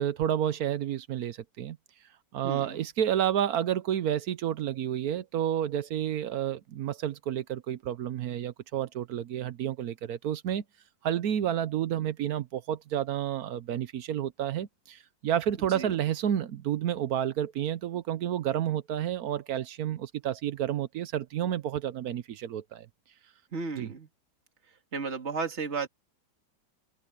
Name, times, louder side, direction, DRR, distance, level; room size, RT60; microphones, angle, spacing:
voice 1, 0.0-1.8 2.3-10.6 11.0-22.9 23.8-23.9, right 10 dB, 65° right, 1.1 m, -30 dB
voice 2, 2.4-2.9 15.7-15.9 23.5-24.1 24.9-25.9, right 4 dB, 40° right, 2.5 m, -34 dB
omnidirectional pair, 1.8 m